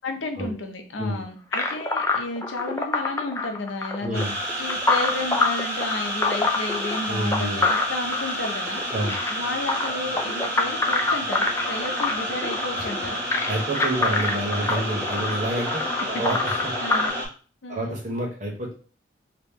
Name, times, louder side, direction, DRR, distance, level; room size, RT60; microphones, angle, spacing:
voice 1, 0.0-4.2 4.6-8.9 9.3-13.2 16.8-17.1 17.6-17.9, left 2 dB, 80° left, 5 dB, 0.7 m, -32 dB
sound 1, 1.5-17.1, left 3 dB, 15° left, 0.3 m, -26 dB
voice 2, 4.0-4.3 7.1-7.6 8.9-9.2 12.7-12.9 13.5-16.7 17.7-18.7, right 1 dB, 40° right, -1 dB, 1.0 m, -28 dB
sound 2, 4.1-17.3, equal, 15° right, 1.3 m, -30 dB
3.0 x 2.9 x 3.5 m, 0.39 s
head